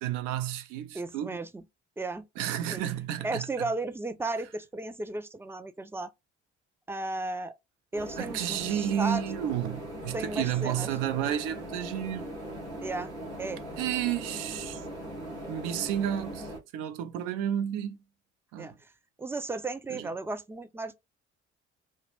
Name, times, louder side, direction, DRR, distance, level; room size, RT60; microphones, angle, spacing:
voice 1, 0.0-1.4 2.4-3.7 8.2-12.3 13.8-14.8 15.5-18.0 18.5-18.8 19.9-20.1, right 10 dB, 65° right, 0.5 m, -31 dB
voice 2, 0.9-1.6 2.0-2.3 2.7-2.8 3.2-6.1 6.9-7.5 7.9-9.2 10.1-10.9 12.8-13.1 13.4-13.6 18.6-18.7 19.2-20.9, right 2 dB, 10° right, 0.3 m, -34 dB
sound 1, 7.9-16.6, equal, 85° right, 0.9 m, -40 dB
2.1 x 2.1 x 3.0 m
figure-of-eight pair, 45°, 33 cm